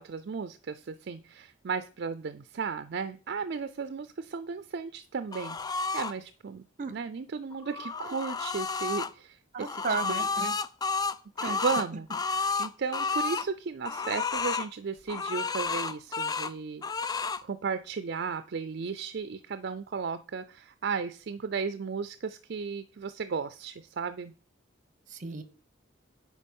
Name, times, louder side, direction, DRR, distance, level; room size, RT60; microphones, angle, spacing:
voice 1, 0.0-9.7 10.1-10.6 11.4-16.8 17.4-24.3, right 5 dB, 55° right, 11 dB, 0.4 m, -35 dB
sound 1, 5.3-6.1 7.5-9.1 9.6-13.5 13.8-14.7 15.1-16.5 16.8-17.4, left 4 dB, 20° left, 0.3 m, -31 dB
voice 2, 9.5-10.5 11.4-11.6 25.1-25.4, right 4 dB, 40° right, 12 dB, 1.0 m, -34 dB
9.8 x 4.7 x 5.3 m, 0.39 s
head